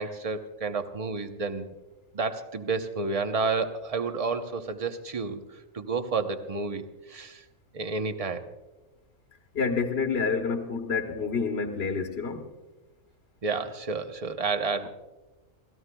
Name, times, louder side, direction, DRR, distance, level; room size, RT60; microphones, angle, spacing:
voice 1, 0.0-1.7 2.1-5.4 5.7-7.4 7.7-8.4 13.4-14.9, right 4 dB, 35° right, 0.8 m, -30 dB
voice 2, 9.5-12.5, left 5 dB, 55° left, 1.2 m, -28 dB
30.0 x 14.5 x 2.3 m
omnidirectional pair, 1.3 m